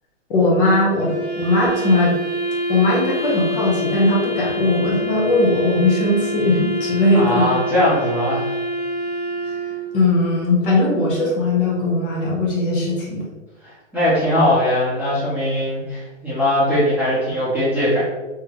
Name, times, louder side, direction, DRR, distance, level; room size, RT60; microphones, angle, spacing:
voice 1, 0.3-2.2 2.7-7.5 9.9-13.2, left 2 dB, 45° left, -4 dB, 1.1 m, -19 dB
Wind instrument woodwind instrument, 1.0-10.2, equal, 60° left, 1.3 m, -26 dB
voice 2, 7.1-8.5 13.6-18.0, left 1 dB, 5° right, -12 dB, 0.8 m, -20 dB
3.5 x 2.2 x 2.9 m, 1.2 s
hypercardioid pair, 145°, 37 cm